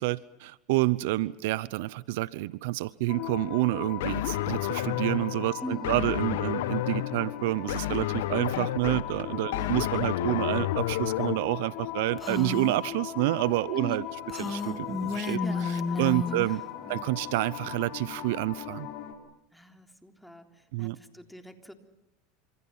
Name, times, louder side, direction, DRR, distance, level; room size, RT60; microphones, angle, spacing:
voice 1, 0.0-14.0 14.4-15.4 16.0-16.6 16.9-18.9 20.7-21.0, right 19 dB, 75° right, 19 dB, 0.8 m, -28 dB
sound 1, 3.1-19.1, left 11 dB, 60° left, 5.1 m, -39 dB
sound 2, 4.0-11.4, left 14 dB, 80° left, 1.3 m, -31 dB
voice 2, 5.6-6.1 9.5-9.8 13.7-14.1 15.4-16.5 16.8-17.1 19.5-21.7, left 1 dB, ahead, 5 dB, 3.5 m, -42 dB
Female speech woman speaking, 12.2-12.8 14.3-16.6, left 4 dB, 20° left, 2.0 m, -32 dB
28.5 x 26.5 x 5.7 m, 0.87 s
supercardioid pair, 110°, 0 cm